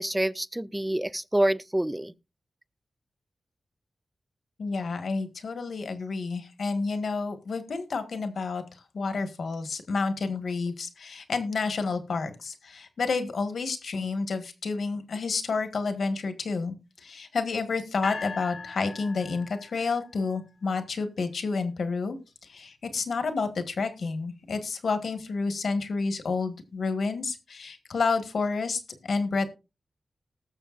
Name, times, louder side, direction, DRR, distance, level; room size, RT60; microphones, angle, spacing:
voice 1, 0.0-2.1, right 1 dB, 15° right, 0.5 m, -27 dB
voice 2, 4.6-8.6 8.9-16.7 17.0-29.5, left 4 dB, 75° left, 1.6 m, -30 dB
sound 1, 18.0-20.1, left 4 dB, 60° left, 1.2 m, -39 dB
19.5 x 6.6 x 2.5 m
cardioid pair, 55°, 0 cm